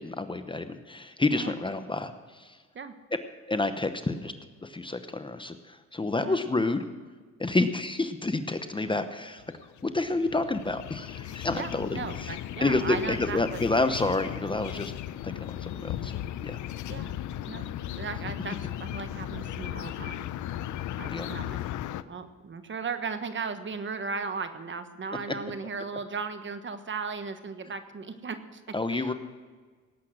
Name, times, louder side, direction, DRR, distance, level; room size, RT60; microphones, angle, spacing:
voice 1, 0.0-2.6 3.5-4.3 4.6-6.8 7.4-9.4 9.8-14.9 15.2-16.6 21.1-21.3 28.7-29.1, left 2 dB, 15° left, 9 dB, 0.9 m, -29 dB
sound 1, 9.4-22.0, left 12 dB, 75° left, 0.6 m, -36 dB
voice 2, 11.5-13.7 16.9-17.1 17.5-17.6 17.9-20.3 21.0-21.6 22.1-28.6 28.9-29.1, right 5 dB, 40° right, 9 dB, 1.3 m, -36 dB
18.0 x 8.4 x 6.3 m, 1.5 s
cardioid pair, 90°, 30 cm